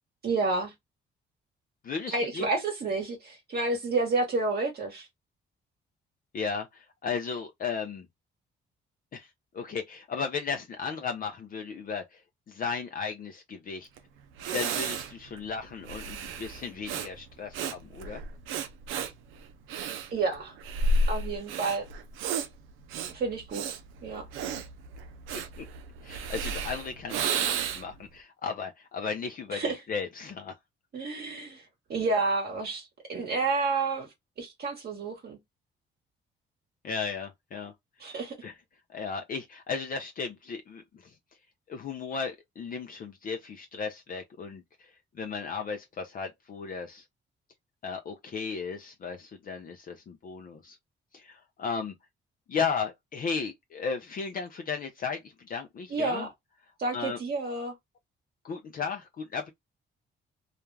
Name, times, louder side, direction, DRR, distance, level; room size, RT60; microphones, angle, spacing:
voice 1, 0.2-0.7 2.1-5.1 20.1-20.6 21.1-21.9 23.1-23.6 24.0-24.2 29.5-29.8 30.9-31.6 31.9-34.1 34.4-35.4 38.0-38.3 55.9-56.3 56.8-57.7, right 3 dB, 50° right, 1.0 m, -30 dB
voice 2, 1.8-2.4 6.3-8.1 9.1-12.2 12.5-13.9 14.5-18.2 25.3-25.6 26.0-30.5 36.8-37.7 38.4-38.5 38.9-41.1 41.7-44.9 45.1-47.0 47.8-50.8 51.1-51.9 52.5-56.3 56.9-57.2 58.4-59.5, left 5 dB, 45° left, 0.5 m, -35 dB
Breathing, 14.0-14.1 14.4-28.0, right 3 dB, 90° right, 0.5 m, -32 dB
2.4 x 2.1 x 3.1 m
cardioid pair, 90°, 20 cm